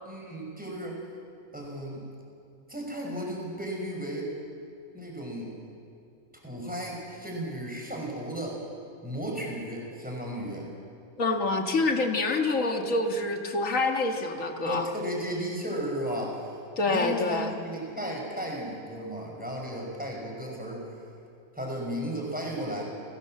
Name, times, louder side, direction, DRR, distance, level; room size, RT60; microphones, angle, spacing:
voice 1, 0.1-1.0 1.5-2.0 2.7-4.3 4.9-5.5 6.4-8.6 9.0-10.7 14.6-16.6 16.8-20.8 21.5-22.8, right 1 dB, 5° right, -2 dB, 5.7 m, -34 dB
voice 2, 11.2-14.9 16.8-17.5, left 3 dB, 85° left, 4 dB, 2.2 m, -26 dB
30.0 x 17.5 x 7.8 m, 2.4 s
omnidirectional pair, 1.3 m